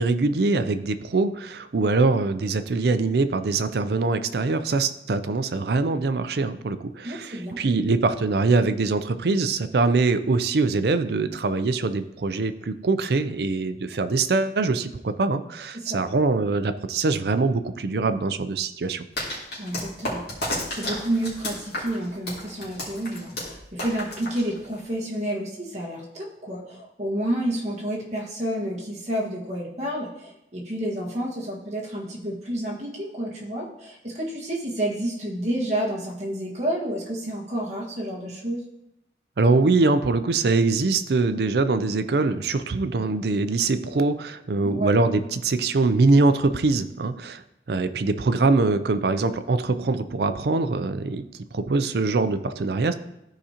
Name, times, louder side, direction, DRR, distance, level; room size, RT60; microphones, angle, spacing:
voice 1, 0.0-19.0 39.4-47.4 47.7-51.2 51.5-52.9, right 3 dB, 65° right, 11 dB, 0.5 m, -23 dB
voice 2, 7.0-7.6 15.7-16.0 19.6-38.6 44.6-44.9, right 1 dB, 40° right, -3 dB, 1.6 m, -30 dB
sound 1, 19.2-24.9, left 1 dB, 70° left, 2.4 m, -33 dB
13.5 x 5.0 x 2.9 m, 0.87 s
head